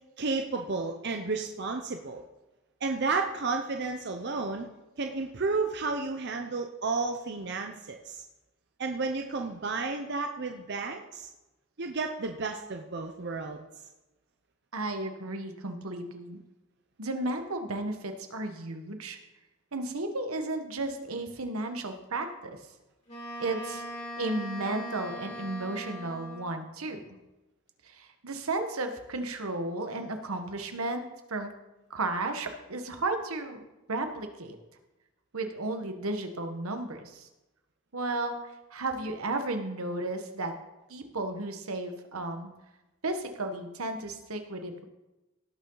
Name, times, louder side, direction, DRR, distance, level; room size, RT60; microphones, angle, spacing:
voice 1, 0.2-2.2 2.8-4.7 5.0-8.2 8.8-11.3 11.8-13.6, right 3 dB, 50° right, 4 dB, 0.8 m, -32 dB
voice 2, 14.7-16.4 17.0-19.2 19.7-22.6 23.4-23.8 24.2-27.2 27.8-31.5 31.9-34.6 35.3-37.3 37.9-40.5 40.9-42.5 43.0-44.8, right 2 dB, 90° right, 6 dB, 1.4 m, -34 dB
Wind instrument woodwind instrument, 23.1-26.6, equal, 30° left, 2.7 m, -40 dB
17.5 x 6.8 x 4.0 m, 1.0 s
head